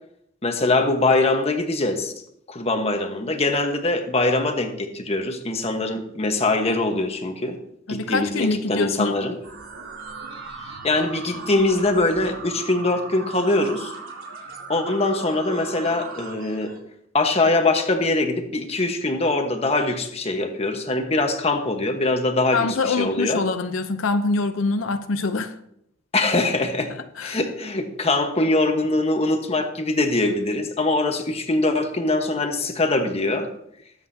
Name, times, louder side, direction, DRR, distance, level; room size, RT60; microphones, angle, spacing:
voice 1, 0.4-2.1 2.5-7.6 7.9-9.4 10.8-13.9 14.7-16.7 17.1-23.4 26.1-26.9 27.2-33.5, left 2 dB, 30° left, 1.3 m, -22 dB
voice 2, 7.9-9.3 22.5-25.6 27.2-27.4, left 3 dB, 90° left, 0.7 m, -24 dB
sound 1, 9.4-16.8, right 4 dB, 85° right, 3.1 m, -38 dB
21.0 x 8.1 x 2.8 m
head